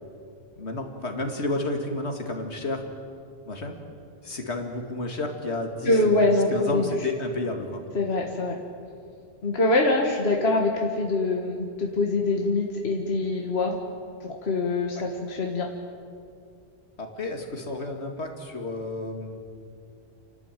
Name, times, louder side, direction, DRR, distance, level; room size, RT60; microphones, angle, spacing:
voice 1, 0.6-2.8 3.5-3.8 4.2-7.8 15.0-15.1 17.0-19.4, left 2 dB, 90° left, 3 dB, 2.5 m, -31 dB
voice 2, 5.8-7.0 8.0-8.6 9.4-13.7 14.2-15.7, left 2 dB, 75° left, 1 dB, 1.9 m, -24 dB
30.0 x 12.5 x 9.0 m, 2.3 s
omnidirectional pair, 1.1 m